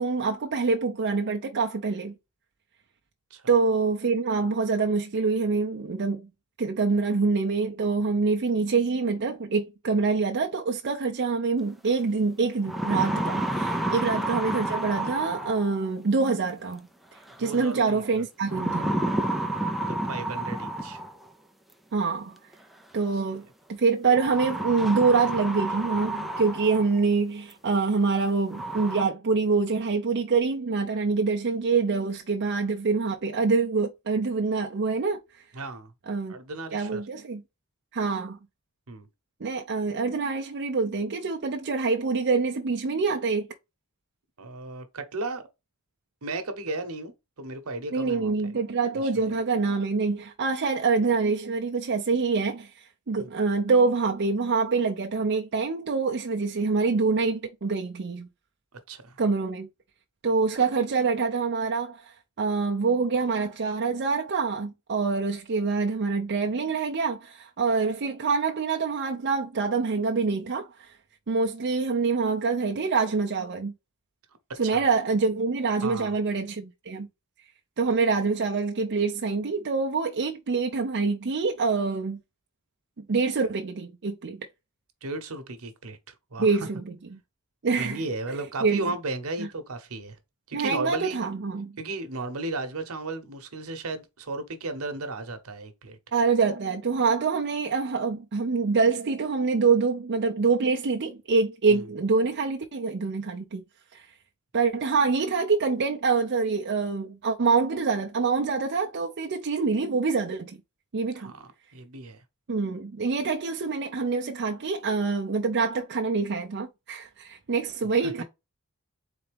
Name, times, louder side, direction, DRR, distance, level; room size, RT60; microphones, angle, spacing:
voice 1, 0.0-2.1 3.5-6.3 6.6-16.9 17.4-19.0 21.9-22.4 22.9-35.4 36.1-36.4 36.7-37.4 37.9-38.4 39.4-43.5 47.9-58.3 59.2-59.7 60.2-71.0 71.3-73.7 74.6-77.1 77.8-82.2 83.1-84.5 86.4-87.2 87.6-88.0 88.3-88.9 89.4-89.5 90.5-91.7 96.1-103.6 103.9-104.1 104.5-110.6 110.9-111.3 112.5-118.2, right 4 dB, 55° right, 0.5 m, -25 dB
sound 1, 11.9-12.0 12.5-15.9 17.3-17.7 18.5-21.3 22.5-22.6 24.1-27.0 27.5-27.6 28.1-28.2 28.5-29.0, right 1 dB, ahead, 0.5 m, -30 dB
voice 2, 17.4-18.0 19.8-21.0 35.5-35.9 36.3-37.0 38.9-39.1 44.4-45.4 46.2-47.1 47.4-48.3 49.0-49.1 53.2-53.3 58.9-59.2 74.7-74.8 75.8-76.1 85.0-86.5 87.8-90.2 90.5-91.2 91.8-96.0 101.7-101.8 111.2-112.2 118.0-118.1, right 2 dB, 75° right, 1.0 m, -35 dB
4.0 x 3.4 x 3.4 m
head